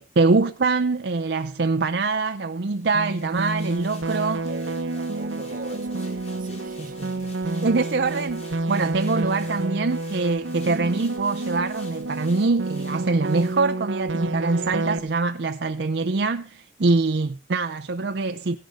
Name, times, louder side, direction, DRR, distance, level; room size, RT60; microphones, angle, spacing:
voice 1, 0.0-4.5 7.6-18.6, right 3 dB, 60° right, 0.6 m, -24 dB
sound 1, 2.7-14.3 14.7-14.8, left 4 dB, 35° left, 3.2 m, -50 dB
sound 2, 2.9-15.0, right 2 dB, 85° right, 1.0 m, -29 dB
voice 2, 4.5-7.7 9.2-9.7, right 2 dB, 45° right, 1.2 m, -40 dB
16.0 x 10.5 x 4.9 m
head